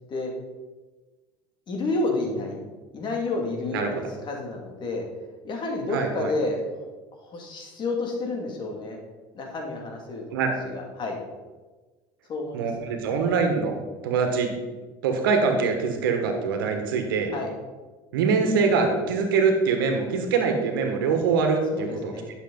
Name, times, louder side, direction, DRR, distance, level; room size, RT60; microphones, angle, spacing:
voice 1, 1.7-2.6 2.9-5.1 5.4-6.6 7.2-9.0 9.3-10.4 10.6-11.2 12.3-12.7 17.3-17.5 21.7-22.3, left 2 dB, 45° left, 1 dB, 2.5 m, -30 dB
voice 2, 5.9-6.3 10.3-10.5 12.5-13.8 14.0-14.5 15.0-17.3 18.1-22.1, right 5 dB, 90° right, 4 dB, 1.6 m, -23 dB
11.5 x 6.8 x 4.0 m, 1.3 s
supercardioid pair, 85°, 11 cm